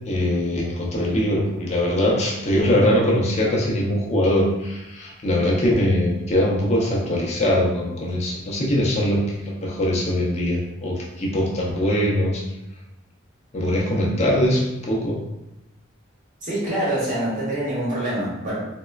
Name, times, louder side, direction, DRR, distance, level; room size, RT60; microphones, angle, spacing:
voice 1, 0.0-12.4 13.5-15.2, left 1 dB, 30° left, -3 dB, 0.5 m, -22 dB
voice 2, 16.4-18.7, right 1 dB, 35° right, -7 dB, 0.9 m, -25 dB
3.4 x 2.1 x 2.2 m, 0.94 s
head